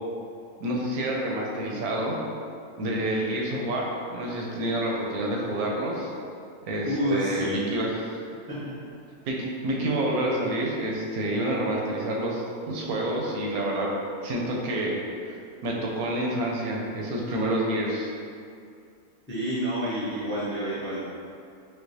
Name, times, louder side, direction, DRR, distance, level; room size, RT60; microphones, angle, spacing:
voice 1, 0.6-2.2 2.8-6.1 6.7-7.9 9.3-13.9 14.2-15.0 15.3-15.4 15.6-18.1, right 1 dB, 85° right, -2 dB, 1.1 m, -28 dB
voice 2, 6.8-7.7 8.5-8.7 19.3-21.0, equal, 15° left, -10 dB, 0.4 m, -29 dB
4.5 x 2.1 x 2.7 m, 2.4 s
omnidirectional pair, 1.5 m